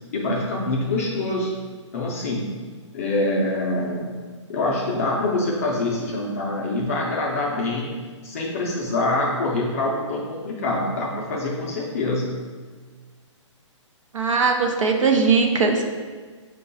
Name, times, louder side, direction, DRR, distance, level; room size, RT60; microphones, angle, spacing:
voice 1, 0.1-1.5 1.9-2.5 2.9-4.1 4.5-7.9 8.2-12.4, left 2 dB, 30° left, -3 dB, 0.4 m, -25 dB
voice 2, 14.1-15.9, right 4 dB, 80° right, 4 dB, 0.7 m, -20 dB
5.1 x 2.3 x 3.9 m, 1.5 s
hypercardioid pair, 165°, 16 cm